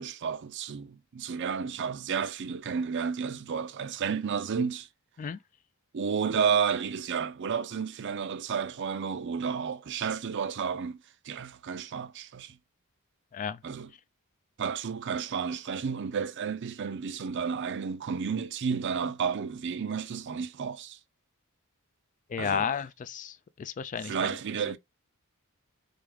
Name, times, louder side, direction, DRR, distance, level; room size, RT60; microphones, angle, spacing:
voice 1, 0.0-4.9 5.9-11.0 11.2-12.6 13.6-13.9 14.6-21.0 22.4-22.7 24.0-24.8, right 6 dB, 55° right, 0.4 m, -31 dB
voice 2, 22.3-23.3 23.6-24.1, left 7 dB, 35° left, 0.3 m, -32 dB
3.5 x 3.5 x 3.4 m
head